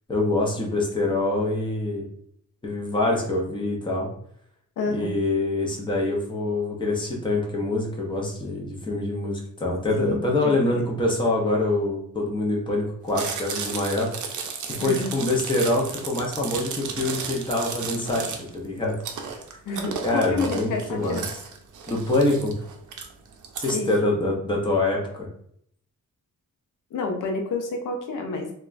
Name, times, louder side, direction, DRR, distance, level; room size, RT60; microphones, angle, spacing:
voice 1, 0.1-2.1 2.6-4.1 4.9-14.4 14.7-18.9 20.0-21.2 21.9-22.5 23.6-25.3, left 2 dB, 15° left, -2 dB, 0.6 m, -25 dB
voice 2, 4.8-5.2 10.0-10.8 14.8-15.1 19.7-21.2 23.7-23.9 26.9-28.5, left 3 dB, 80° left, 3 dB, 0.5 m, -29 dB
Chewing mastication, 13.1-23.7, right 6 dB, 70° right, 0.5 m, -34 dB
2.9 x 2.2 x 2.4 m, 0.68 s
wide cardioid pair, 135°, 31 cm